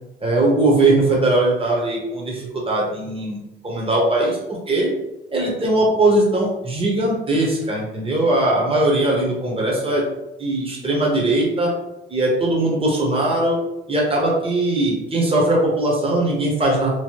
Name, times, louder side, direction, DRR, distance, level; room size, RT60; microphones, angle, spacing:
voice 1, 0.2-3.4 3.6-4.4 4.7-4.9 5.3-10.0 10.4-11.7 12.1-13.6 13.9-16.9, right 2 dB, 30° right, -2 dB, 1.0 m, -20 dB
3.1 x 2.1 x 3.0 m, 0.94 s
cardioid pair, 90°, 20 cm